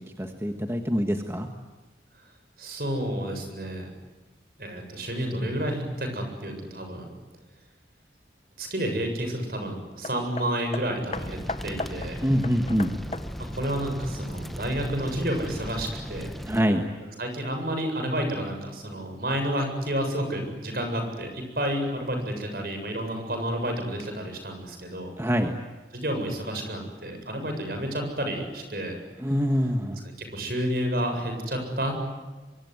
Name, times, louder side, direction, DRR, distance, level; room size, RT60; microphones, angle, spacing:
voice 1, 0.2-1.5 12.2-12.9 16.5-16.8 25.2-25.5 29.2-30.0, equal, 15° right, 5 dB, 1.5 m, -25 dB
voice 2, 2.6-3.9 4.6-7.1 8.6-12.2 13.4-16.3 17.2-25.1 25.9-29.0 30.2-31.9, right 1 dB, 55° right, 5 dB, 7.7 m, -30 dB
Hammer, 10.0-14.8 15.6-15.7, left 3 dB, 35° left, 1.0 m, -38 dB
sound 1, 11.1-16.6, equal, ahead, 1.2 m, -37 dB
25.0 x 24.0 x 9.6 m, 1.2 s
head